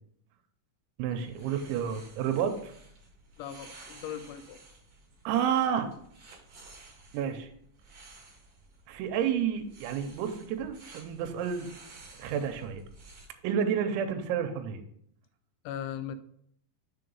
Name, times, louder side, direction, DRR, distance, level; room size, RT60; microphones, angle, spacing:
voice 1, 1.0-2.7 5.3-5.9 7.1-7.5 8.9-11.7 12.2-12.8 13.4-14.8, right 8 dB, 85° right, 6 dB, 3.0 m, -30 dB
sound 1, 1.1-13.3, right 2 dB, 50° right, 2.1 m, -53 dB
voice 2, 3.4-4.6 15.6-16.2, left 9 dB, 90° left, 10 dB, 3.0 m, -39 dB
6.5 x 3.8 x 5.3 m, 0.70 s
omnidirectional pair, 5.3 m